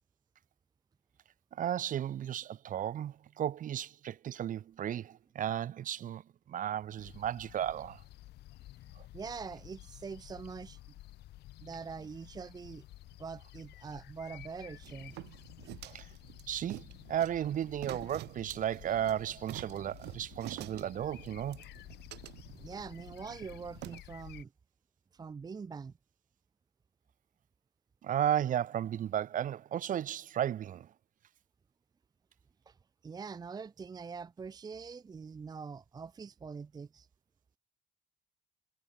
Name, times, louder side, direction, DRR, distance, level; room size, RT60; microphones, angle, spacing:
voice 1, 1.5-6.2 6.5-8.0 9.0-9.1 15.8-16.1 16.5-21.6 28.0-30.9, right 10 dB, 50° right, 1.2 m, -34 dB
sound 1, 7.0-24.4, left 16 dB, 75° left, 4.3 m, -52 dB
voice 2, 9.1-10.8 11.6-12.8 13.2-15.2 15.6-15.8 22.5-24.5 25.1-25.9 32.7-32.8 33.0-37.1, right 5 dB, 25° right, 0.6 m, -44 dB
sound 2, 14.8-24.0, right 18 dB, 85° right, 3.1 m, -48 dB
cardioid pair, 110°, 17 cm